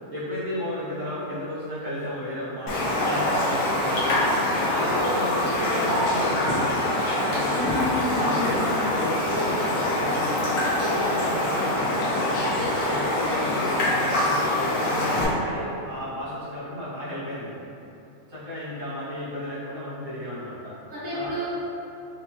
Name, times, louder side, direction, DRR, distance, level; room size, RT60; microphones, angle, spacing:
voice 1, 0.1-4.3 4.6-6.6 7.1-7.7 8.2-17.5 18.3-20.8 21.1-21.3, left 1 dB, 70° right, -13 dB, 1.9 m, -33 dB
Raindrop, 2.7-15.2, left 1 dB, 85° left, 1.2 m, -24 dB
voice 2, 7.5-8.9 20.9-21.4, equal, 15° left, -13 dB, 0.8 m, -31 dB
5.3 x 2.0 x 2.7 m, 2.8 s
omnidirectional pair, 1.6 m